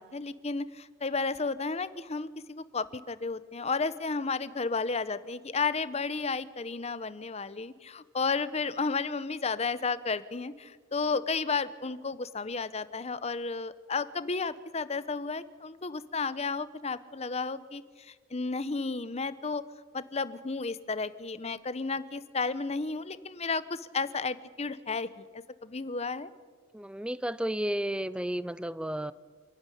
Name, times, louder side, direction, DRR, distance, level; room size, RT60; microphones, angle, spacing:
voice 1, 0.0-19.6 19.9-26.3, left 4 dB, 35° left, 15 dB, 0.9 m, -33 dB
voice 2, 26.7-29.1, right 1 dB, 5° right, 17 dB, 0.6 m, -32 dB
27.0 x 12.0 x 10.0 m, 1.5 s
head